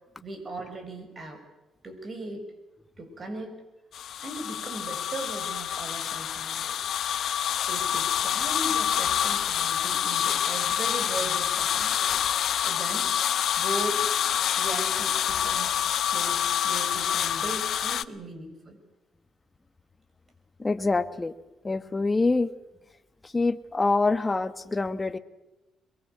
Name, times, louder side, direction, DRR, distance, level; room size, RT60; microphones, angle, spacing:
voice 1, 0.2-1.4 1.8-2.5 3.0-3.6 4.2-6.8 7.7-12.2 12.6-13.1 13.6-14.0 14.6-18.8, right 2 dB, 40° right, 7 dB, 6.4 m, -38 dB
sound 1, 3.9-18.0, left 10 dB, 70° left, 0.8 m, -27 dB
voice 2, 20.6-21.3 21.6-22.5 23.2-25.2, left 3 dB, 20° left, 10 dB, 1.3 m, -25 dB
22.5 x 22.5 x 8.1 m, 1.0 s
cardioid pair, 90°, 0 cm